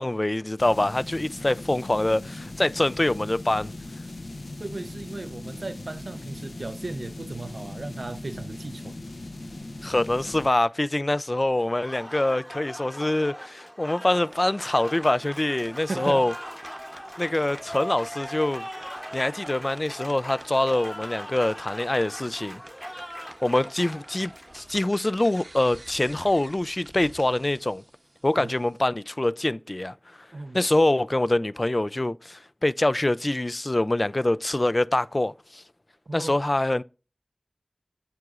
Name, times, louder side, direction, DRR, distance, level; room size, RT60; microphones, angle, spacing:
voice 1, 0.0-3.7 9.8-16.3 17.2-18.6 19.1-22.6 23.4-27.8 28.2-29.9 30.5-35.6 36.1-36.8, left 1 dB, 40° left, 0.3 m, -25 dB
sound 1, 0.6-10.5, left 2 dB, 90° left, 0.8 m, -39 dB
voice 2, 4.6-9.0 15.9-16.3 28.4-28.5 30.3-30.6 36.1-36.4, right 2 dB, 80° right, 0.5 m, -36 dB
Applause, 11.6-25.2, equal, ahead, 0.8 m, -40 dB
sound 2, 14.0-28.9, right 2 dB, 50° right, 0.8 m, -51 dB
8.2 x 7.7 x 2.4 m
wide cardioid pair, 50°, 0 cm